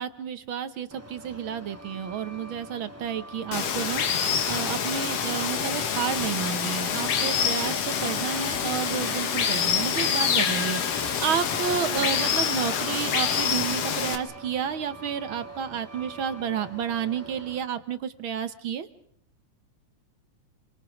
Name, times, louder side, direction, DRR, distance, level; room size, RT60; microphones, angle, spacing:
voice 1, 0.0-4.0 4.5-18.9, right 8 dB, 60° right, 11 dB, 1.5 m, -31 dB
Truck, 0.9-17.6, right 3 dB, 5° right, 1.3 m, -44 dB
Water, 3.5-14.2, left 7 dB, 60° left, 2.6 m, -26 dB
29.0 x 24.5 x 5.2 m, 0.64 s
omnidirectional pair, 3.4 m